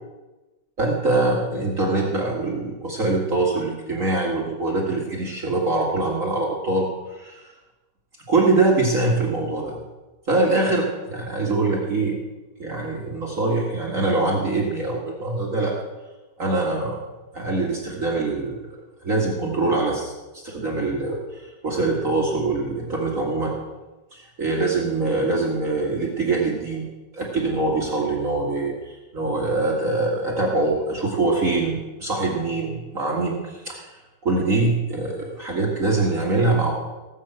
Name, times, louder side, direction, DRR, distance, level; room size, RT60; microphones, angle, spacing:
voice 1, 0.8-7.5 8.3-9.8 10.3-12.2 12.6-15.7 16.4-17.0 17.3-18.6 19.0-23.5 24.1-26.9 27.1-34.0 34.2-36.7, right 2 dB, 45° right, -3 dB, 2.3 m, -23 dB
18.5 x 7.3 x 7.7 m, 1.1 s
omnidirectional pair, 2.1 m